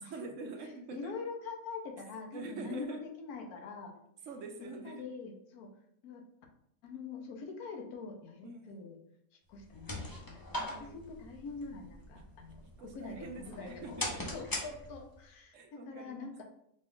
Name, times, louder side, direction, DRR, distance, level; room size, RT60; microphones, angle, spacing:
voice 1, 0.1-1.1 2.3-3.0 4.3-5.1 8.4-8.9 10.6-11.0 12.2-12.3 12.6-14.3 15.5-16.3, right 3 dB, 65° right, 4 dB, 0.9 m, -45 dB
voice 2, 0.9-3.9 4.6-5.7 6.0-6.2 6.8-9.0 9.3-14.0 14.3-16.4, left 4 dB, 85° left, 3 dB, 1.3 m, -44 dB
sound 1, 9.5-15.3, left 1 dB, 30° left, 0.4 m, -42 dB
5.0 x 2.3 x 3.5 m, 0.73 s
omnidirectional pair, 1.5 m